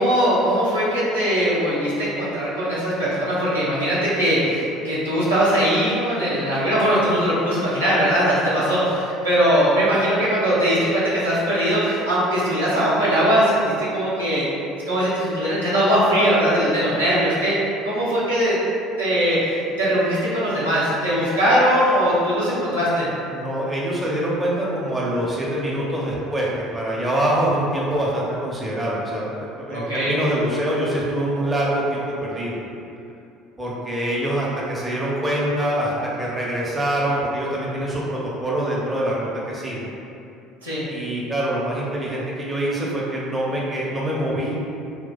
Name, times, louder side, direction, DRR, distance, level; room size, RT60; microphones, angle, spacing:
voice 1, 0.0-14.5 14.9-17.6 17.8-18.6 19.0-23.1 29.7-30.1 40.6-40.9, equal, 80° right, -10 dB, 0.7 m, -20 dB
voice 2, 23.3-32.6 33.6-40.0 40.9-44.6, right 1 dB, 15° right, -5 dB, 0.6 m, -25 dB
2.3 x 2.2 x 3.9 m, 2.6 s
figure-of-eight pair, 60°, 0 cm